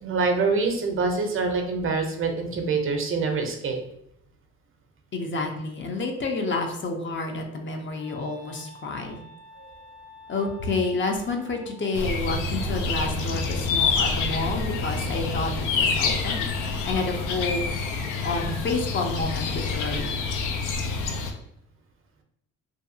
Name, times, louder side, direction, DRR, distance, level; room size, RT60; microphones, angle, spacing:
voice 1, 0.0-3.8 9.6-9.7, right 4 dB, 45° right, 4 dB, 0.6 m, -25 dB
voice 2, 5.1-9.2 10.3-16.5 16.8-17.6 18.2-20.1, left 3 dB, 40° left, 3 dB, 0.5 m, -29 dB
Wind instrument woodwind instrument, 7.0-12.1, left 1 dB, 60° left, 1.0 m, -50 dB
sound 1, 11.9-21.3, left 4 dB, 85° left, 0.5 m, -27 dB
2.6 x 2.3 x 2.6 m, 0.75 s
cardioid pair, 90°, 30 cm